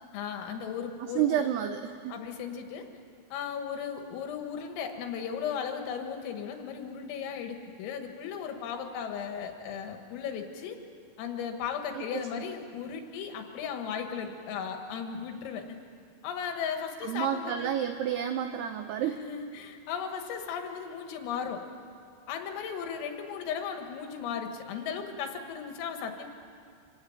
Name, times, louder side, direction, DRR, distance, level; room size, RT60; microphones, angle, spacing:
voice 1, 0.1-1.4 2.1-2.9 3.3-10.8 11.2-15.7 16.2-17.8 19.0-21.6 22.3-26.3, left 7 dB, 85° left, 4 dB, 4.5 m, -36 dB
voice 2, 1.0-2.2 11.9-12.3 17.0-19.3, right 10 dB, 90° right, 7 dB, 2.3 m, -30 dB
26.5 x 17.5 x 8.8 m, 2.3 s
omnidirectional pair, 5.9 m